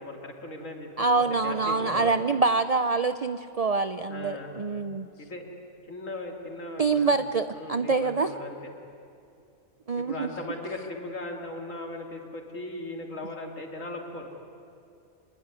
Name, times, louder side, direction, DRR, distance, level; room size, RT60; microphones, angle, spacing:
voice 1, 0.0-1.1 1.4-2.2 4.1-4.6 5.2-5.4 5.9-7.1 7.5-8.6 10.0-14.3, left 2 dB, 65° left, 2 dB, 3.3 m, -38 dB
voice 2, 1.0-5.1 6.8-8.3 9.9-10.3, right 4 dB, 45° right, 11 dB, 0.5 m, -25 dB
25.5 x 21.5 x 9.8 m, 2.6 s
omnidirectional pair, 1.5 m